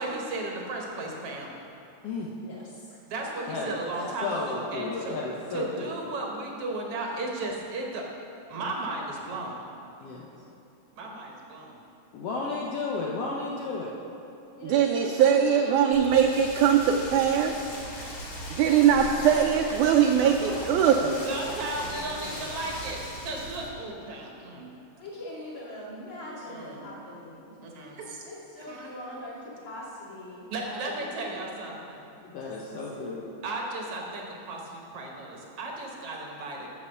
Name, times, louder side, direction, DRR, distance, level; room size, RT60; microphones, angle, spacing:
voice 1, 0.0-1.5 3.1-5.2 5.5-8.0 8.5-9.6 11.0-11.8 21.2-24.7 26.4-26.8 27.6-28.2 28.7-28.9 30.5-32.1 33.4-36.7, right 2 dB, 60° right, 0 dB, 1.6 m, -35 dB
voice 2, 2.4-3.0 4.0-4.2 5.3-5.9 14.6-16.1 18.5-22.7 25.0-27.6 28.2-31.6 32.2-33.1, left 1 dB, 40° left, -7 dB, 2.8 m, -42 dB
voice 3, 4.2-6.0 10.0-10.3 12.1-13.9 32.3-33.3, left 3 dB, 75° left, -3 dB, 1.4 m, -33 dB
voice 4, 14.6-17.5 17.9-18.1 18.5-21.2, right 8 dB, 80° right, 2 dB, 1.8 m, -21 dB
Rain, 15.9-23.7, equal, 60° left, 3.1 m, -40 dB
sound 1, 17.7-22.9, right 1 dB, 5° right, 1.1 m, -48 dB
9.6 x 6.8 x 6.8 m, 2.9 s
omnidirectional pair, 3.8 m